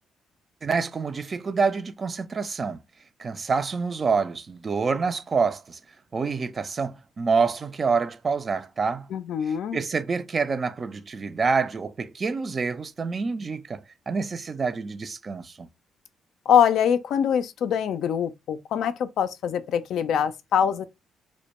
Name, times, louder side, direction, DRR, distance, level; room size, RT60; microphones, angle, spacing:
voice 1, 0.6-2.8 3.2-5.8 6.1-9.1 9.7-15.7, right 5 dB, 35° right, 0.3 m, -27 dB
voice 2, 9.1-9.8 16.5-20.9, left 8 dB, 75° left, 0.3 m, -23 dB
2.1 x 2.1 x 2.8 m
cardioid pair, 90°, 0 cm